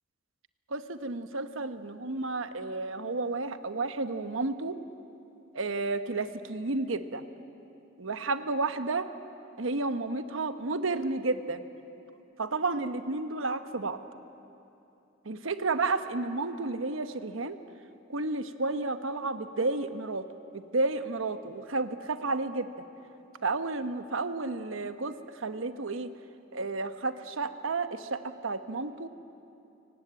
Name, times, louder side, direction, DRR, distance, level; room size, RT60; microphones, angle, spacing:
voice 1, 0.7-4.8 5.5-7.2 8.0-9.1 9.6-11.6 12.4-14.0 15.2-17.6 18.1-20.2 20.5-22.8 23.4-26.1 26.5-29.1, right 3 dB, 90° right, 10 dB, 1.1 m, -31 dB
24.0 x 18.0 x 8.9 m, 2.8 s
head